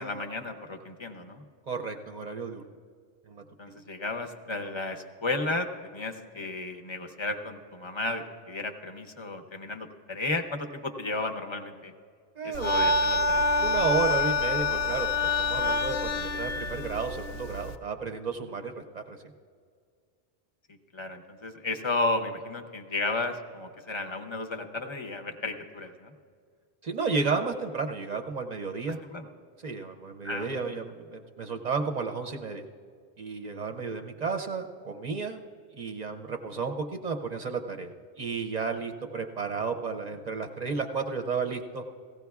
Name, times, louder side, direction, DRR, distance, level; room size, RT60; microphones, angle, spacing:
voice 1, 0.0-1.4 3.6-11.9 12.4-13.4 20.9-26.1 29.0-29.3 30.2-30.8, left 2 dB, 30° left, 5 dB, 0.6 m, -33 dB
voice 2, 1.7-2.6 3.3-3.8 12.4-12.7 13.6-19.2 26.8-29.0 29.6-32.6 33.2-35.4 35.7-37.9 38.2-41.8, right 4 dB, 45° right, 6 dB, 0.6 m, -32 dB
sound 1, 12.5-17.8, left 2 dB, 70° left, 0.8 m, -27 dB
17.5 x 15.5 x 2.3 m, 2.1 s
omnidirectional pair, 1.1 m